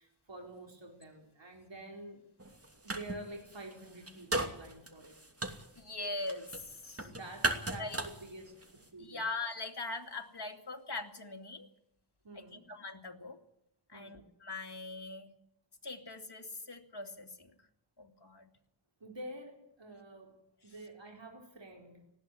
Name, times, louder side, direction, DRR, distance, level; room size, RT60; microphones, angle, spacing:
voice 1, 0.0-2.2 2.8-5.2 7.0-9.3 12.2-12.7 13.9-14.3 19.0-20.4 20.6-22.0, right 1 dB, 65° right, 1 dB, 4.3 m, -48 dB
sound 1, 2.4-3.2 3.5-8.9, right 2 dB, 30° right, 2.8 m, -37 dB
voice 2, 5.8-7.1 7.8-8.0 9.0-11.7 12.4-13.4 13.9-15.3 15.8-17.5 18.0-18.5, left 3 dB, 55° left, 4 dB, 2.8 m, -41 dB
19.0 x 15.0 x 9.8 m, 0.80 s
wide cardioid pair, 70°, 48 cm